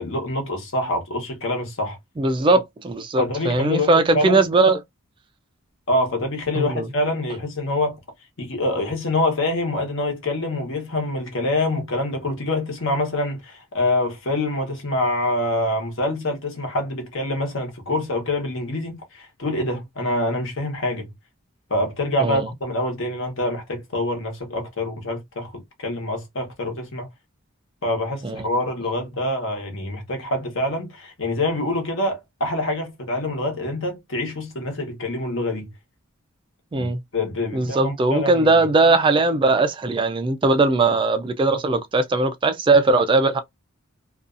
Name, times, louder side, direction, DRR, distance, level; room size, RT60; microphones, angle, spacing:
voice 1, 0.0-2.0 3.2-4.4 5.9-8.0 8.4-21.1 21.7-27.1 27.8-35.7 36.7-38.5, left 1 dB, 65° left, 1.1 m, -25 dB
voice 2, 2.2-4.8 6.6-6.9 22.2-22.4 28.2-28.5 36.7-37.0 37.5-43.4, right 3 dB, 25° right, 0.3 m, -19 dB
2.5 x 2.3 x 2.4 m
head